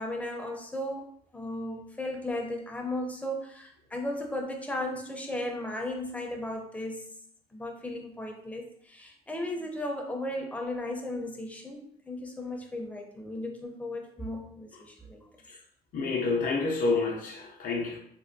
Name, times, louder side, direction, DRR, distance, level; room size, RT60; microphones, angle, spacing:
voice 1, 0.0-7.0 7.5-15.3, left 1 dB, 10° left, 2 dB, 0.5 m, -35 dB
voice 2, 15.9-18.0, left 4 dB, 55° left, 0 dB, 0.5 m, -28 dB
3.3 x 2.2 x 2.5 m, 0.68 s
cardioid pair, 110°, 17 cm